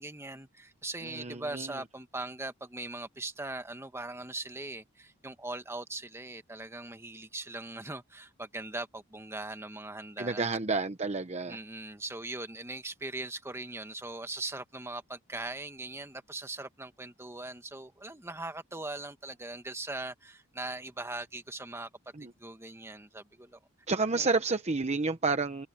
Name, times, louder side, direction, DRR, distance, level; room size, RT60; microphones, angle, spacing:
voice 1, 0.0-10.5 11.5-21.9 22.4-23.6 24.1-24.3, right 2 dB, 10° right, 1.5 m, -40 dB
voice 2, 1.0-1.8 10.2-11.6 22.1-22.3 23.9-25.7, right 3 dB, 30° right, 0.9 m, -30 dB
head